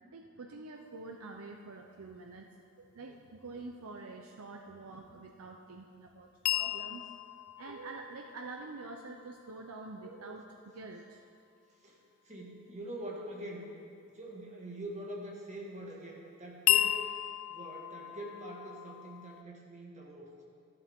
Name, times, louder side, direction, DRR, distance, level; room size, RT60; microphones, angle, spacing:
voice 1, 0.1-2.5 2.8-7.0 7.6-11.2, right 3 dB, 75° right, 2 dB, 0.6 m, -46 dB
sound 1, 6.4-10.4 16.7-19.4, left 14 dB, 85° left, 0.3 m, -34 dB
voice 2, 12.2-13.6 14.1-17.0 17.5-20.3, right 1 dB, 35° right, -2 dB, 1.7 m, -44 dB
12.5 x 11.5 x 3.6 m, 2.4 s
head